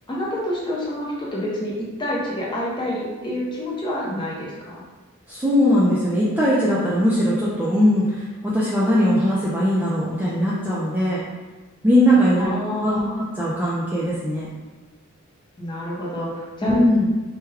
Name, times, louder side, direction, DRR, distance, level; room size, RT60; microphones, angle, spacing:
voice 1, 0.1-4.8 12.3-13.1 15.6-16.8, left 1 dB, 20° left, -5 dB, 0.8 m, -28 dB
voice 2, 5.3-11.2 11.8-12.5 12.8-14.5 16.6-17.1, equal, 10° right, -7 dB, 0.4 m, -20 dB
3.3 x 2.2 x 3.4 m, 1.3 s
head